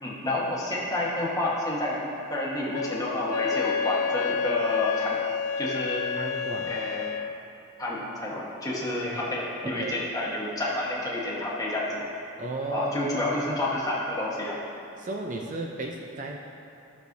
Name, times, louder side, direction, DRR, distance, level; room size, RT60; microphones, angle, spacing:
voice 1, 0.0-5.3 5.6-6.0 6.7-7.2 7.8-12.0 12.7-14.6, left 1 dB, 15° left, -5 dB, 1.2 m, -29 dB
Wind instrument woodwind instrument, 2.7-7.4, left 6 dB, 90° left, 0.3 m, -29 dB
voice 2, 6.2-6.8 8.9-9.3 9.6-10.0 12.4-13.3 15.0-16.4, right 2 dB, 35° right, 1 dB, 0.4 m, -35 dB
13.0 x 6.5 x 2.6 m, 2.7 s
head